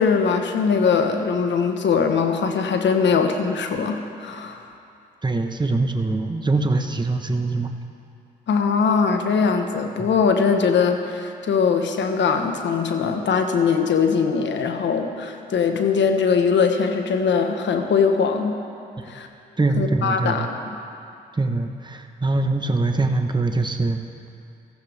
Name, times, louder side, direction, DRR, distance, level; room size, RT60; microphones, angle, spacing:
voice 1, 0.0-4.6 8.5-18.6 19.1-19.3 19.8-20.6, left 5 dB, 70° left, 5 dB, 1.3 m, -21 dB
voice 2, 5.2-7.8 10.0-10.2 19.6-20.5 21.3-24.0, right 3 dB, 25° right, 5 dB, 1.3 m, -23 dB
18.5 x 14.5 x 3.6 m, 2.5 s
supercardioid pair, 50°, 20 cm